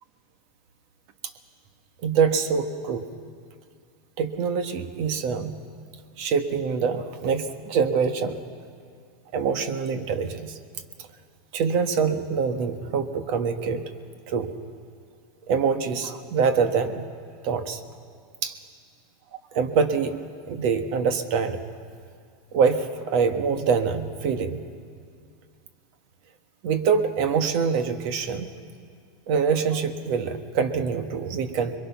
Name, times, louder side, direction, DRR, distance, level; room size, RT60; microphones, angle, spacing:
voice 1, 2.0-3.1 4.2-5.6 6.2-8.4 9.3-10.6 11.5-13.9 14.3-14.6 15.5-17.1 17.4-17.8 18.4-18.6 19.5-20.2 20.5-21.6 22.5-24.6 26.6-28.5 29.3-31.7, right 5 dB, 55° right, 8 dB, 1.4 m, -25 dB
26.0 x 22.5 x 5.9 m, 2.2 s
supercardioid pair, 150°, 0 cm